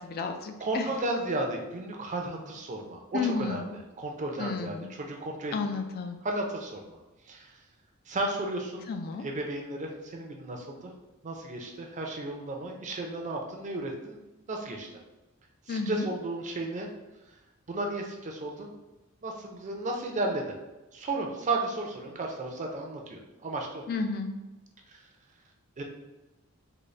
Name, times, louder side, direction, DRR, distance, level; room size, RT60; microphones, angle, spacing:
voice 1, 0.0-0.9 3.1-3.7 4.4-4.9 5.5-6.2 8.9-9.3 15.7-16.0 23.9-24.3, left 4 dB, 45° left, 6 dB, 0.3 m, -32 dB
voice 2, 0.6-5.5 6.2-7.0 7.3-7.5 8.1-8.8 9.2-10.9 11.2-14.2 14.5-14.9 15.7-16.9 17.7-18.7 19.2-20.5 20.9-23.8 24.9-25.0 25.8-25.9, right 2 dB, 35° right, 2 dB, 0.5 m, -34 dB
3.9 x 2.1 x 3.1 m, 1.0 s
head